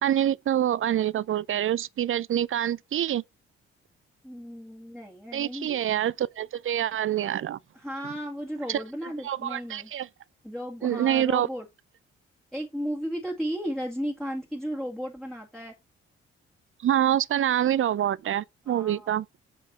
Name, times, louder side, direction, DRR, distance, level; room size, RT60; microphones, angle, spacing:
voice 1, 0.0-3.2 5.3-7.6 8.7-8.8 9.2-10.1 10.8-11.5 16.8-19.3, right 11 dB, 45° right, 0.5 m, -26 dB
voice 2, 4.2-6.1 7.7-9.9 10.4-11.7 12.5-15.8 18.7-19.1, equal, ahead, 1.8 m, -34 dB
7.6 x 4.0 x 4.2 m
hypercardioid pair, 45°, 30 cm